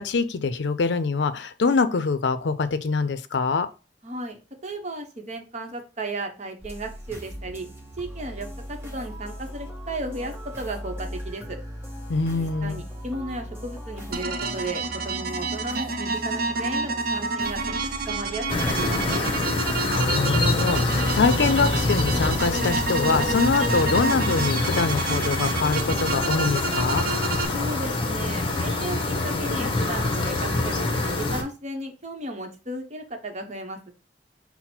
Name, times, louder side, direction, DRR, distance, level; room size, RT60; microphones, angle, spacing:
voice 1, 0.0-3.7 12.1-12.8 19.9-27.0, left 4 dB, 80° left, 11 dB, 0.5 m, -24 dB
voice 2, 4.0-7.7 8.0-11.6 12.4-17.6 18.1-19.4 27.5-33.9, right 2 dB, 40° right, 4 dB, 0.8 m, -35 dB
sound 1, 6.6-19.1, equal, 15° right, 0.8 m, -38 dB
sound 2, 14.1-27.5, right 4 dB, 55° right, 0.5 m, -29 dB
sound 3, 18.5-31.4, left 2 dB, 30° left, 0.8 m, -25 dB
5.8 x 2.0 x 4.3 m, 0.33 s
head